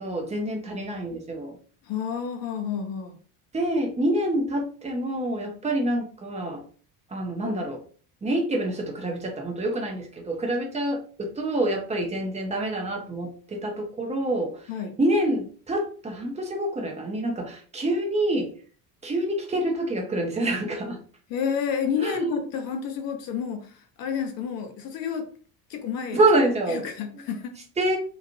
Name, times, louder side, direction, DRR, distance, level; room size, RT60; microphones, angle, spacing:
voice 1, 0.0-1.6 3.5-6.6 7.1-7.8 8.2-14.7 15.0-18.5 19.0-21.0 22.0-22.4 26.1-26.9 27.8-28.0, right 1 dB, 15° right, 1 dB, 0.8 m, -26 dB
voice 2, 1.8-3.2 14.7-14.9 21.3-25.3 25.7-26.2 26.7-27.6, left 7 dB, 45° left, 6 dB, 0.8 m, -30 dB
3.0 x 2.4 x 2.6 m, 0.43 s
figure-of-eight pair, 60°, 50 cm